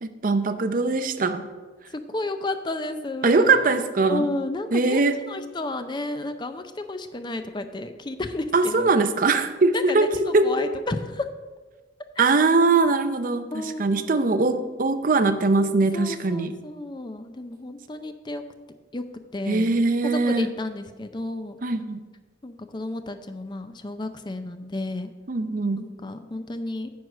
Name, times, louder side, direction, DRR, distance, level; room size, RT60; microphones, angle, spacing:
voice 1, 0.0-1.4 3.2-4.3 4.7-5.2 8.5-10.5 12.2-16.5 19.5-20.5 21.6-22.0 25.3-25.8, right 3 dB, 45° right, 9 dB, 0.5 m, -21 dB
voice 2, 1.9-3.7 4.1-8.9 9.7-11.3 13.5-14.7 15.9-18.4 18.9-19.0 19.3-19.8 20.0-21.6 22.4-25.1 25.8-26.9, left 2 dB, 25° left, 9 dB, 0.5 m, -32 dB
9.4 x 4.7 x 6.5 m, 1.3 s
head